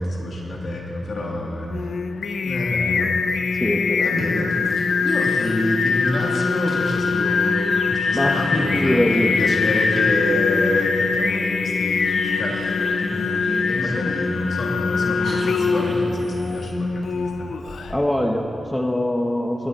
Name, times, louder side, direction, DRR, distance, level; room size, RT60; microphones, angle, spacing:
voice 1, 0.0-1.9 2.4-3.1 4.0-4.5 5.0-17.5, left 1 dB, 65° left, -2 dB, 2.0 m, -27 dB
Singing, 1.7-18.0, left 5 dB, 90° left, 0.5 m, -23 dB
voice 2, 3.6-4.2 8.1-9.3 17.9-19.7, left 1 dB, 10° left, 2 dB, 0.8 m, -23 dB
Fire, 4.2-7.2 13.1-14.4 14.8-14.9 15.2-16.4, right 2 dB, 90° right, 2.5 m, -44 dB
sound 1, 5.1-16.7, right 1 dB, 30° right, 1.3 m, -42 dB
20.0 x 8.7 x 4.0 m, 2.9 s
wide cardioid pair, 80°, 0 cm